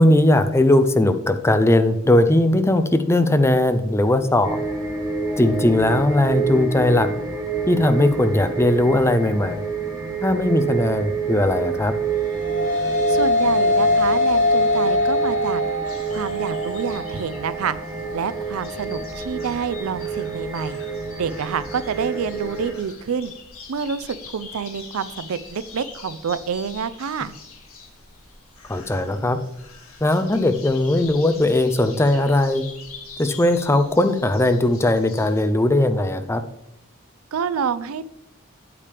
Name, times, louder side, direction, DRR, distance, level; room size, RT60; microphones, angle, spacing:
voice 1, 0.0-4.6 5.4-7.1 7.7-9.6 10.2-11.9 28.7-29.4 30.0-32.6 33.2-36.4, left 1 dB, 10° left, 9 dB, 0.5 m, -19 dB
sound 1, 4.4-22.7, right 5 dB, 15° right, 1.4 m, -28 dB
sound 2, 12.1-21.3, left 2 dB, 55° left, 3.8 m, -23 dB
voice 2, 13.1-15.6 16.1-17.8 18.1-20.8 21.2-23.3 23.7-27.3 37.3-38.1, right 6 dB, 90° right, 16 dB, 0.4 m, -28 dB
sound 3, 15.8-35.4, left 5 dB, 80° left, 2.1 m, -43 dB
8.5 x 8.4 x 3.4 m, 0.80 s
head